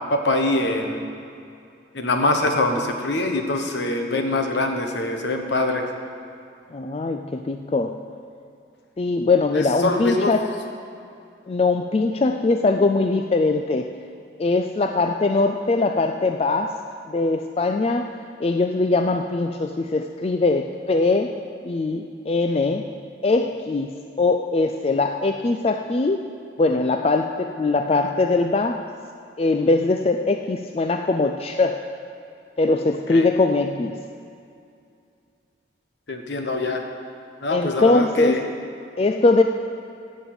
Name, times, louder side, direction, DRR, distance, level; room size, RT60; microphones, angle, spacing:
voice 1, 0.1-1.0 1.9-5.8 9.5-10.3 33.1-33.2 36.1-36.8 37.4-38.4, left 2 dB, 65° left, 4 dB, 1.2 m, -23 dB
voice 2, 6.7-8.0 9.0-10.5 11.5-13.9 14.4-16.8 17.1-18.1 18.4-21.4 21.6-22.9 23.2-26.2 26.6-28.8 29.4-31.8 32.6-34.0 37.5-38.5 39.0-39.4, left 3 dB, 30° left, 6 dB, 0.3 m, -21 dB
15.0 x 5.4 x 8.0 m, 2.5 s
head